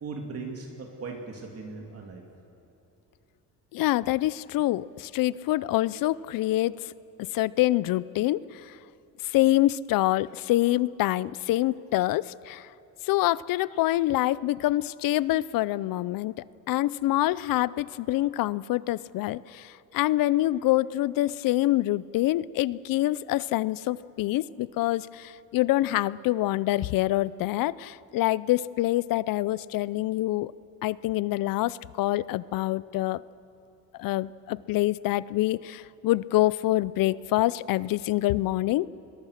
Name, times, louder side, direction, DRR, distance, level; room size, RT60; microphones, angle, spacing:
voice 1, 0.0-2.2, right 4 dB, 45° right, 1 dB, 2.7 m, -38 dB
voice 2, 3.7-6.9 7.3-8.8 9.2-12.7 13.0-16.3 16.7-30.5 30.8-33.2 34.0-38.9, left 16 dB, 70° left, 20 dB, 0.6 m, -26 dB
28.0 x 22.0 x 6.6 m, 2.8 s
cardioid pair, 125°, 35 cm